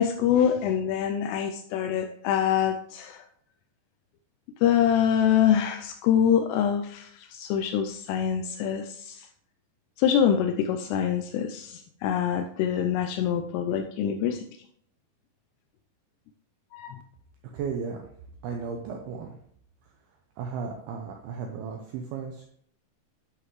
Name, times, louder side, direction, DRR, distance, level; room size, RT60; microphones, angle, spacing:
voice 1, 0.0-3.2 4.6-9.3 10.0-14.4 16.7-17.0, left 9 dB, 85° left, 6 dB, 2.4 m, -25 dB
voice 2, 17.5-18.0 18.4-19.4 20.4-22.5, right 6 dB, 80° right, 2 dB, 2.2 m, -34 dB
11.5 x 5.8 x 3.1 m, 0.66 s
omnidirectional pair, 5.3 m